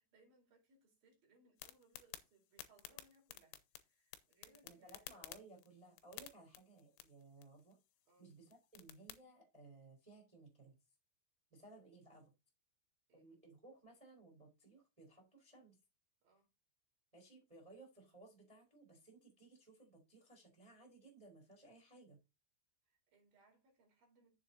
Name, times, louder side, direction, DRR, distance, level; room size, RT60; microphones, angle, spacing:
voice 1, 0.0-5.2 8.1-8.3 11.6-11.7 13.1-13.3 16.2-16.5 22.9-24.4, right 2 dB, 50° right, 5.4 m, -71 dB
sound 1, 1.6-9.2, left 14 dB, 90° left, 3.4 m, -56 dB
voice 2, 4.6-7.8 8.2-10.8 11.5-12.3 13.1-15.8 17.1-22.2, right 2 dB, 10° right, 3.2 m, -60 dB
7.7 x 7.4 x 4.0 m
omnidirectional pair, 5.6 m